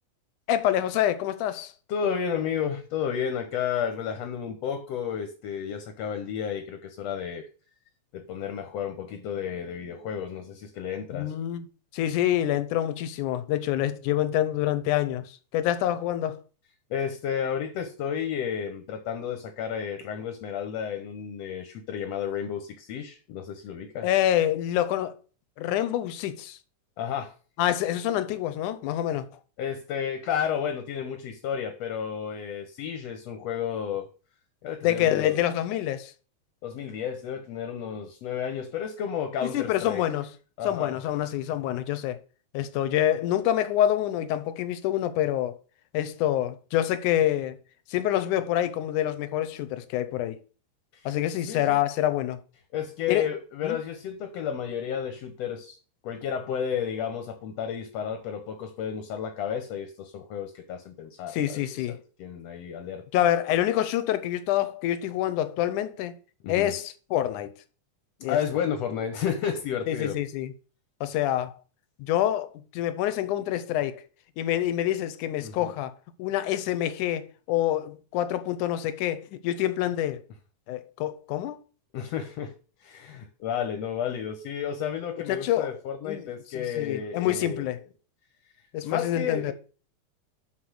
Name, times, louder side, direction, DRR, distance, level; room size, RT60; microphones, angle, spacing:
voice 1, 0.5-1.7 11.1-11.7 11.9-16.4 24.0-25.2 25.6-26.6 27.6-29.3 34.8-36.1 39.4-40.3 40.6-42.2 42.5-45.6 45.9-47.6 47.9-50.4 51.1-52.4 53.1-53.3 53.6-53.8 61.3-62.0 63.1-66.2 66.5-67.5 68.2-68.4 69.9-70.5 71.0-71.5 72.0-74.0 74.4-75.9 76.2-80.2 80.7-81.6 85.3-85.7 86.1-86.3 86.6-87.8 88.7-89.5, left 12 dB, 90° left, 2.3 m, -26 dB
voice 2, 1.9-7.5 8.1-11.3 16.9-24.1 27.0-27.3 29.6-34.1 34.6-35.4 36.6-40.0 40.6-41.0 50.9-51.1 51.5-51.8 52.7-55.8 56.0-61.6 61.9-63.1 66.4-66.7 68.3-70.2 75.4-75.7 81.9-82.5 82.8-87.7 88.8-89.5, left 8 dB, 65° left, 2.0 m, -32 dB
6.1 x 6.0 x 6.2 m
omnidirectional pair, 3.4 m